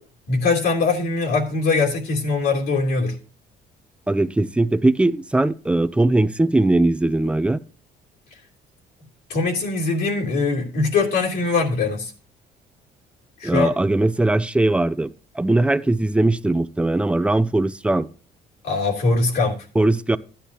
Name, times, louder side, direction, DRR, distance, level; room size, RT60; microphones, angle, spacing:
voice 1, 0.3-3.2 9.3-12.1 13.4-13.7 18.6-19.6, left 3 dB, 75° left, 3.2 m, -21 dB
voice 2, 4.1-7.6 13.4-18.1 19.8-20.2, right 2 dB, 5° right, 0.5 m, -20 dB
14.0 x 10.0 x 2.9 m
cardioid pair, 110°, 17 cm